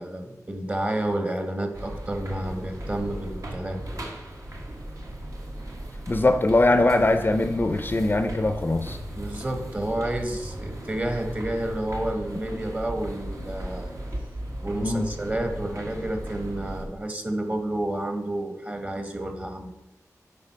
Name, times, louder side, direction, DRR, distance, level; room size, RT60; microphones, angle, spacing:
voice 1, 0.0-3.8 9.2-13.9 14.6-19.7, right 1 dB, 25° right, 5 dB, 1.1 m, -30 dB
sound 1, 1.7-16.9, right 1 dB, 65° right, 1.4 m, -36 dB
voice 2, 6.1-9.0 14.8-15.1, left 2 dB, 35° left, 8 dB, 0.5 m, -21 dB
8.9 x 3.9 x 5.6 m, 0.95 s
wide cardioid pair, 80°, 6 cm